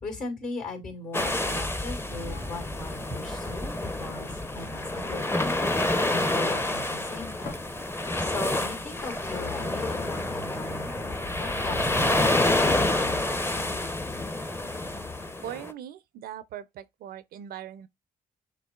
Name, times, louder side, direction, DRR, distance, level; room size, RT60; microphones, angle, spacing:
voice 1, 0.0-7.5 8.2-11.1 11.3-13.1, left 2 dB, 65° left, 2.6 m, -38 dB
sound 1, 1.1-15.7, left 2 dB, 15° left, 0.6 m, -28 dB
sound 2, 2.1-15.3, left 3 dB, 80° left, 1.1 m, -43 dB
voice 2, 15.4-17.9, right 10 dB, 80° right, 0.4 m, -40 dB
6.8 x 3.0 x 2.3 m
supercardioid pair, 55°, 15 cm